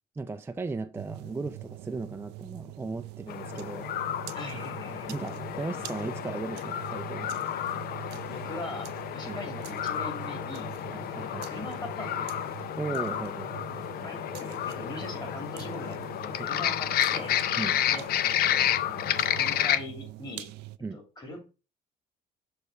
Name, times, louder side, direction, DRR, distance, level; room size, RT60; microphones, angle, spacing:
voice 1, 0.1-3.9 5.1-7.5 9.3-9.4 10.9-11.5 12.8-13.5 16.4-16.7 17.6-17.8 20.8-21.0, right 3 dB, 15° right, 0.4 m, -36 dB
sound 1, 0.9-20.8, right 18 dB, 90° right, 0.4 m, -44 dB
sound 2, 3.3-19.8, left 11 dB, 65° left, 0.6 m, -31 dB
voice 2, 4.3-5.1 8.3-10.7 11.3-12.3 14.0-17.3 17.9-18.1 19.3-20.5 20.9-21.4, left 2 dB, 25° left, 2.6 m, -41 dB
6.4 x 3.4 x 5.3 m
cardioid pair, 110°, 17 cm